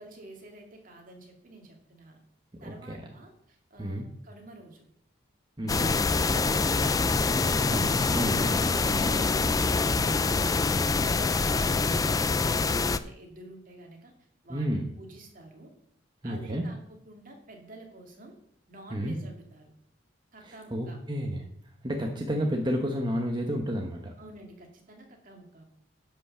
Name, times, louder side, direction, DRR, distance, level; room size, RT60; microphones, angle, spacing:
voice 1, 0.0-2.2 2.6-4.8 8.9-10.4 10.7-14.1 14.4-15.7 16.2-18.3 18.7-19.7 20.3-21.0 24.2-25.6, right 1 dB, 45° right, 2 dB, 2.4 m, -49 dB
voice 2, 2.6-3.0 3.8-4.1 5.6-5.9 7.6-9.1 14.5-14.8 16.2-16.6 18.9-19.1 20.7-21.4 21.8-24.1, equal, 20° right, 2 dB, 1.0 m, -31 dB
sound 1, 5.7-13.0, left 4 dB, 20° left, 0.3 m, -25 dB
10.5 x 5.7 x 6.8 m, 0.68 s
head